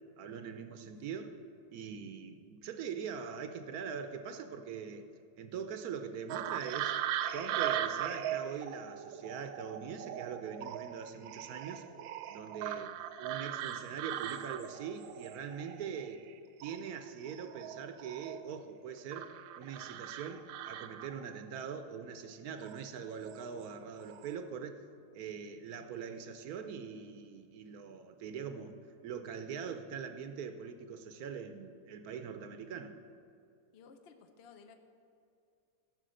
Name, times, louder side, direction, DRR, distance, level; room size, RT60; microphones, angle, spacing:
voice 1, 0.2-1.3 1.7-5.1 5.4-7.0 7.3-11.8 12.3-16.2 16.6-24.8 25.1-28.8 29.0-33.0, right 6 dB, 65° right, 8 dB, 1.1 m, -42 dB
voice 2, 0.8-1.1 33.7-34.7, left 5 dB, 65° left, 6 dB, 0.6 m, -57 dB
sound 1, 6.3-16.3 16.6-18.6 19.1-21.4 22.6-22.8 23.3-23.7 24.0-24.3, right 11 dB, 85° right, 1.3 m, -39 dB
12.5 x 5.9 x 7.6 m, 2.6 s
omnidirectional pair, 2.0 m